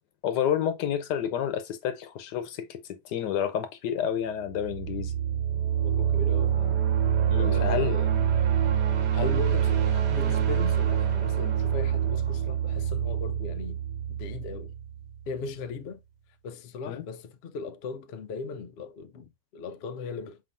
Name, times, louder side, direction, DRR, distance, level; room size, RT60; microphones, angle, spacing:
voice 1, 0.2-5.1 7.3-8.0 16.9-17.1, left 9 dB, 85° left, 1.4 m, -29 dB
sound 1, 4.5-15.3, right 9 dB, 85° right, 1.5 m, -26 dB
voice 2, 5.8-6.8 7.3-8.1 9.1-13.8 14.1-14.7 15.3-16.0 16.4-20.4, left 4 dB, 65° left, 0.6 m, -37 dB
4.6 x 3.9 x 2.5 m
omnidirectional pair, 1.8 m